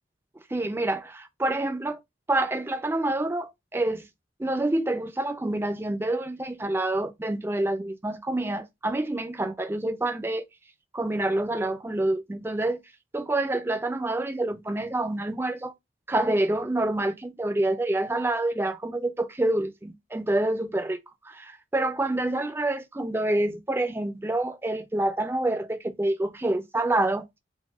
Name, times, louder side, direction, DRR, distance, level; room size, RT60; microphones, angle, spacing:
voice 1, 0.5-2.0 2.3-4.1 4.4-10.4 10.9-12.8 13.1-15.7 16.1-21.0 21.2-27.3, right 2 dB, 10° right, 0.3 m, -27 dB
5.9 x 2.2 x 2.3 m
head